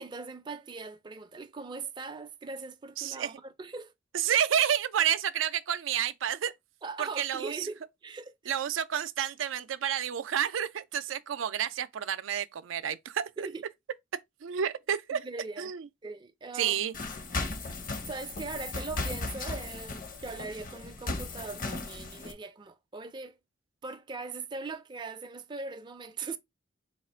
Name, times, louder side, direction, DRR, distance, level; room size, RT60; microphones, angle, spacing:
voice 1, 0.0-3.9 6.8-8.5 13.4-13.6 15.1-15.7 16.0-17.0 17.7-23.4 23.8-26.4, right 3 dB, 25° right, 0.4 m, -40 dB
voice 2, 3.0-3.3 4.1-6.5 7.0-7.7 8.5-13.5 14.4-15.3 15.6-15.9 16.5-16.9, right 9 dB, 90° right, 0.4 m, -30 dB
sound 1, 16.9-22.3, left 2 dB, 45° left, 0.7 m, -36 dB
4.1 x 2.4 x 4.2 m
head